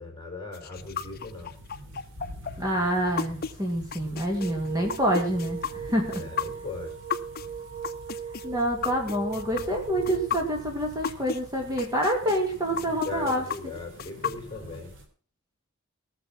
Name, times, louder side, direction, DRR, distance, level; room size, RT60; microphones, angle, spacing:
voice 1, 0.0-1.5 6.1-7.0 12.8-14.9, left 3 dB, 20° left, 1 dB, 4.2 m, -38 dB
sound 1, 0.5-11.4 11.8-14.8, left 7 dB, 45° left, 0.8 m, -33 dB
sound 2, 0.7-15.1, equal, 60° right, 3.2 m, -46 dB
voice 2, 2.6-6.3 8.4-13.4, equal, 15° right, 1 dB, 2.2 m, -27 dB
sound 3, 4.4-10.3, right 7 dB, 35° right, 1.8 m, -38 dB
18.0 x 6.9 x 5.8 m, 0.41 s
head